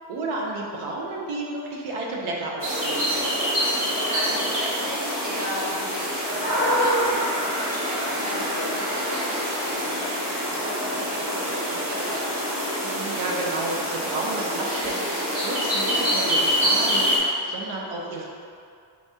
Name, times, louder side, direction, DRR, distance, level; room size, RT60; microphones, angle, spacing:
voice 1, 0.1-3.1 12.8-18.3, right 2 dB, 85° right, -2 dB, 0.8 m, -32 dB
sound 1, 2.6-17.2, equal, 35° right, 1.1 m, -25 dB
voice 2, 4.0-12.3, equal, 20° right, -6 dB, 0.9 m, -37 dB
4.7 x 3.5 x 2.7 m, 2.3 s
cardioid pair, 110°, 49 cm